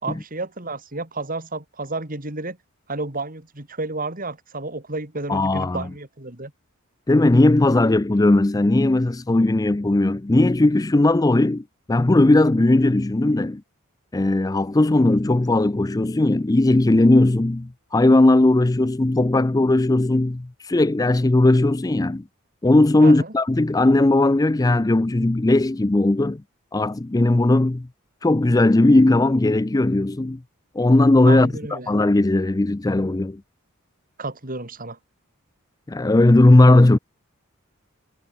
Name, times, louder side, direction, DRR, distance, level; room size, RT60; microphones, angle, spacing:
voice 1, 0.0-2.6 2.9-6.5 23.0-23.3 31.2-31.9 34.2-35.0, right 2 dB, 40° right, 3.5 m, -31 dB
voice 2, 5.3-5.9 7.1-13.6 14.1-22.2 22.6-26.4 26.7-27.9 28.2-30.4 30.8-33.4 35.9-37.0, left 2 dB, 15° left, 0.4 m, -17 dB
head